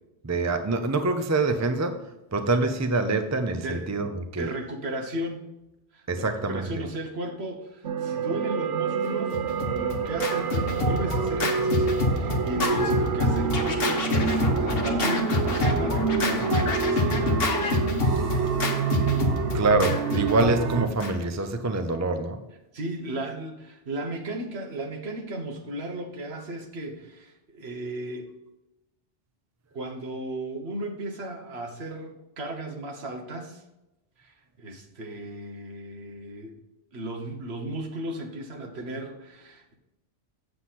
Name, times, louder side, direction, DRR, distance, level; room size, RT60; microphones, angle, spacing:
voice 1, 0.2-2.0 2.3-4.5 6.1-6.8 19.5-22.4, right 3 dB, 20° right, 7 dB, 0.5 m, -25 dB
voice 2, 3.6-4.0 4.3-5.4 5.9-9.4 9.7-17.5 22.7-28.3 29.7-33.6 34.2-36.5 36.9-39.7, right 1 dB, 60° right, 3 dB, 1.5 m, -35 dB
sound 1, 7.8-20.9, right 5 dB, 80° right, 1.1 m, -27 dB
Scratching (performance technique), 9.3-21.4, left 2 dB, 55° left, 1.3 m, -27 dB
7.7 x 7.7 x 4.2 m, 0.95 s
omnidirectional pair, 1.2 m